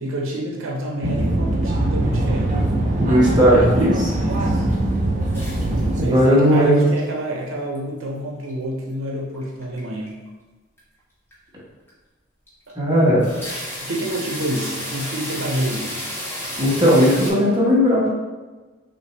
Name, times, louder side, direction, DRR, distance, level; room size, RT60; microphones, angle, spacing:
voice 1, 0.0-2.6 4.2-4.7 6.0-10.1 12.7-12.8 13.8-16.0, right 1 dB, 75° right, -1 dB, 0.7 m, -28 dB
sound 1, 1.0-6.0, right 1 dB, 35° right, 0.5 m, -22 dB
voice 2, 3.0-4.1 6.0-6.9 12.8-13.3 16.6-18.1, equal, 20° right, -6 dB, 1.2 m, -16 dB
sound 2, 5.3-6.2 6.5-7.0 7.4-8.0 8.4-8.5 9.3-9.8 10.1-10.3 10.8-10.9 11.3-11.4 11.9-12.0 12.5-12.7 13.0-17.3, equal, 10° left, 1.2 m, -32 dB
6.1 x 2.5 x 3.2 m, 1.3 s
head